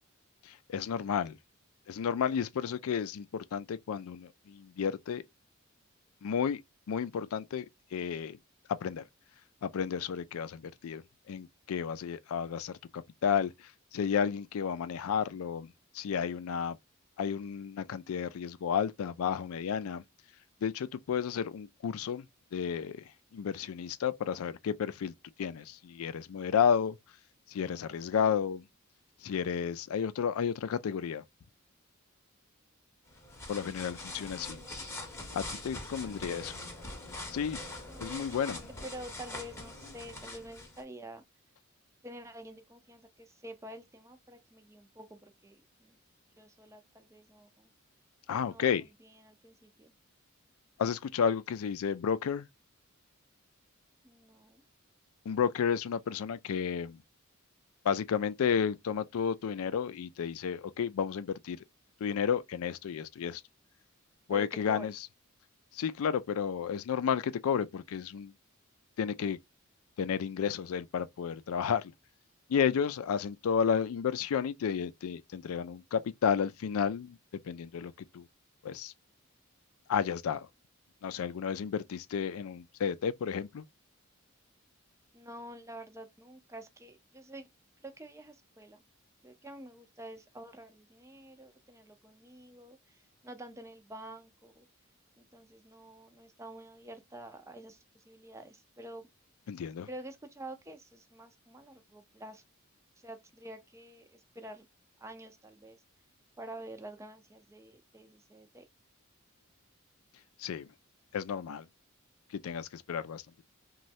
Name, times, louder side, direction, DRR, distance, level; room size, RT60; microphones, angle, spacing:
voice 1, 0.4-1.4 1.9-5.2 6.2-6.6 6.9-7.7 7.9-8.4 8.7-9.0 9.6-16.8 17.2-20.0 20.6-22.2 22.5-23.0 23.3-25.1 25.4-27.0 27.5-28.6 29.2-31.2 33.5-34.6 35.3-36.6 37.3-37.6 38.0-38.6 48.3-48.9 50.8-52.5 55.3-57.0 57.8-61.6 62.0-63.4 64.3-64.9 65.7-68.3 69.0-69.4 70.0-71.9 72.5-77.2 77.4-78.3 78.6-78.9 79.9-80.5 81.0-83.6 99.5-99.9 110.4-110.7 111.1-111.7 112.4-113.2, left 7 dB, 85° left, 0.4 m, -32 dB
sound 1, 33.1-40.8, left 2 dB, 15° left, 0.8 m, -43 dB
voice 2, 34.1-34.7 35.4-36.5 37.8-41.2 42.0-46.0 46.4-47.7 48.3-49.9 54.0-54.6 64.3-64.9 85.1-87.5 87.8-88.8 89.2-94.7 95.2-99.1 99.9-102.4 103.0-104.7 105.0-105.8 106.4-108.7, right 1 dB, 15° right, 0.5 m, -48 dB
3.1 x 2.2 x 2.6 m
head